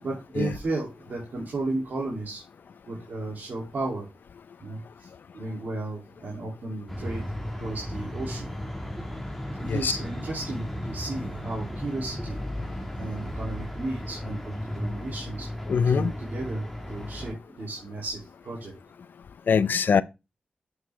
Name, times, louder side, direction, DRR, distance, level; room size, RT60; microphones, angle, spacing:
voice 1, 0.0-2.4 2.9-4.1 4.6-5.1 5.3-7.2 7.5-8.5 9.6-12.4 13.0-15.5 15.8-18.7, right 2 dB, 75° right, 2.8 m, -34 dB
sound 1, 6.9-17.3, left 1 dB, ahead, 1.9 m, -35 dB
voice 2, 15.7-16.1 19.5-20.0, left 6 dB, 80° left, 0.5 m, -22 dB
7.9 x 6.1 x 3.4 m
cardioid pair, 65°, 3 cm